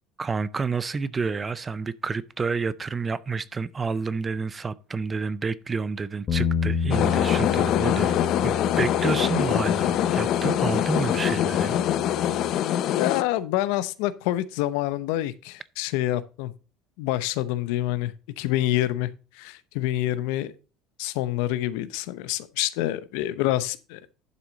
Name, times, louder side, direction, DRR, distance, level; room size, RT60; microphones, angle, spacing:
voice 1, 0.2-8.1 8.4-11.8, right 4 dB, 20° right, 0.4 m, -29 dB
Bass guitar, 6.3-12.5, left 6 dB, 30° left, 1.4 m, -31 dB
sound 1, 6.9-13.2, left 11 dB, 45° left, 0.6 m, -24 dB
voice 2, 12.9-16.5 17.0-19.1 19.3-20.5 21.0-24.0, left 14 dB, 80° left, 0.8 m, -27 dB
11.0 x 6.1 x 3.9 m
cardioid pair, 155°, 0 cm